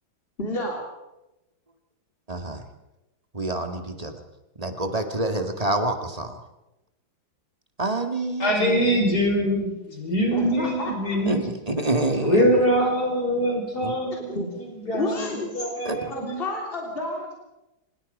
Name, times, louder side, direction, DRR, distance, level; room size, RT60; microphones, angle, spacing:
voice 1, 0.4-0.8 10.3-11.2 14.3-14.5 14.9-15.5 16.1-17.3, left 1 dB, 30° left, -1 dB, 3.6 m, -30 dB
voice 2, 2.3-2.6 3.3-4.2 4.6-6.3 7.8-9.0 11.3-12.5 13.8-13.9 15.9-16.1, right 2 dB, 20° right, 5 dB, 2.0 m, -27 dB
voice 3, 8.4-11.5 12.2-14.4 14.9-15.2 15.5-16.4, equal, 50° left, 1 dB, 6.1 m, -23 dB
25.0 x 21.5 x 5.5 m, 0.97 s
omnidirectional pair, 2.1 m